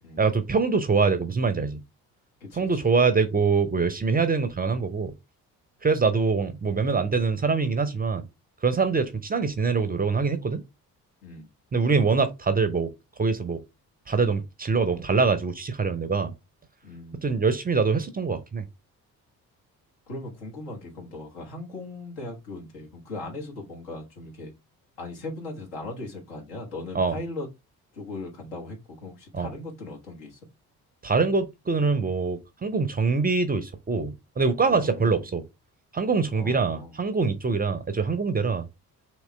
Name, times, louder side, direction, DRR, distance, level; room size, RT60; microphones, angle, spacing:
voice 1, 0.2-1.8 2.6-5.1 5.8-8.2 8.6-10.6 11.7-12.9 13.2-13.6 14.1-16.3 17.2-18.6 26.9-27.2 29.3-29.5 31.0-35.4 35.9-38.7, right 4 dB, 20° right, 0.5 m, -24 dB
voice 2, 2.4-2.9 11.2-11.5 16.8-17.4 20.1-24.5 25.0-27.5 27.9-30.4 34.7-35.3 36.3-36.9, left 2 dB, 70° left, 1.5 m, -38 dB
3.7 x 3.0 x 3.2 m
figure-of-eight pair, 45°, 46 cm